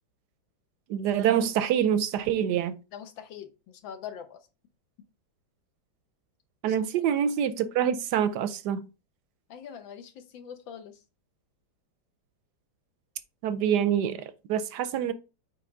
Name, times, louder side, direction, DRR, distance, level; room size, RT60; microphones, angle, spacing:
voice 1, 0.9-2.8 6.6-8.9 13.4-15.1, right 9 dB, 75° right, 1.0 m, -26 dB
voice 2, 2.9-4.5 6.7-7.1 9.5-11.0, left 8 dB, 75° left, 1.7 m, -43 dB
5.8 x 4.6 x 3.7 m
omnidirectional pair, 2.1 m